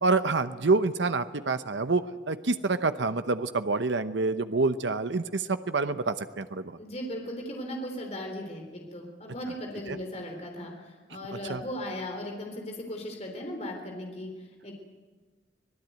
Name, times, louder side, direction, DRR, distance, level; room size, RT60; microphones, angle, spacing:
voice 1, 0.0-6.8 9.9-10.0 11.3-11.6, right 3 dB, 80° right, 10 dB, 0.9 m, -27 dB
voice 2, 6.8-14.7, left 1 dB, 35° left, 2 dB, 3.6 m, -37 dB
25.0 x 18.5 x 9.3 m, 1.3 s
head